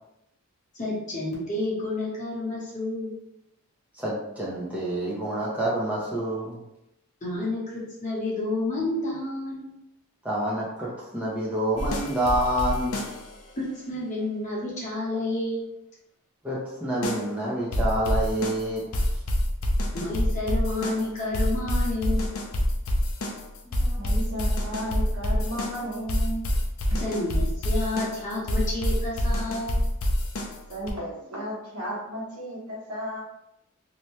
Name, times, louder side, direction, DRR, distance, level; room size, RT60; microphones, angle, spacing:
voice 1, 0.7-3.1 7.2-9.6 13.6-15.6 19.9-22.3 27.0-29.8, left 2 dB, 35° left, -6 dB, 0.9 m, -30 dB
voice 2, 3.9-6.6 10.2-13.0 16.4-18.8 23.7-24.2, right 1 dB, 5° right, -7 dB, 0.5 m, -28 dB
sound 1, 11.8-13.4 17.0-17.3 17.7-30.9, equal, 65° left, 0.5 m, -26 dB
voice 3, 24.0-26.5 26.9-27.0 30.7-33.2, equal, 80° right, -5 dB, 1.0 m, -34 dB
2.7 x 2.2 x 3.1 m, 0.84 s
head